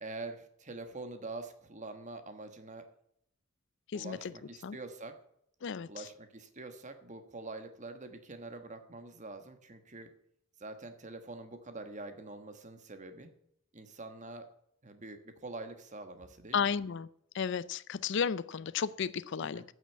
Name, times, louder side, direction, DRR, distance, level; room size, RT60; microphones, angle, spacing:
voice 1, 0.0-2.9 3.9-5.2 5.9-10.1 10.6-13.3 13.7-14.5 14.8-16.7 19.5-19.6, right 2 dB, 35° right, 8 dB, 1.3 m, -45 dB
voice 2, 16.5-17.1 17.3-19.6, left 6 dB, 55° left, 17 dB, 0.4 m, -33 dB
8.9 x 6.4 x 8.4 m, 0.72 s
head